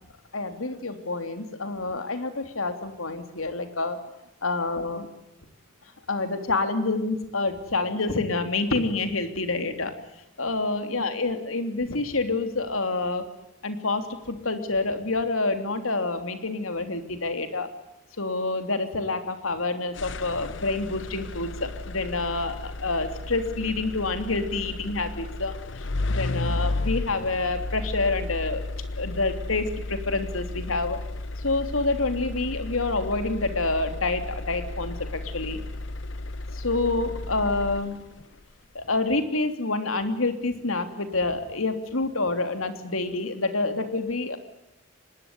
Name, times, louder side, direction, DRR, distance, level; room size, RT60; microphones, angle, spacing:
voice 1, 0.3-4.0 4.4-5.1 6.1-9.9 10.4-13.2 13.6-17.7 18.2-28.6 29.0-31.0 31.4-35.6 36.5-38.0 38.7-44.4, left 3 dB, 90° left, 8 dB, 3.2 m, -27 dB
sound 1, 20.0-38.2, left 2 dB, 60° left, 0.9 m, -33 dB
25.5 x 20.5 x 9.8 m, 0.87 s
head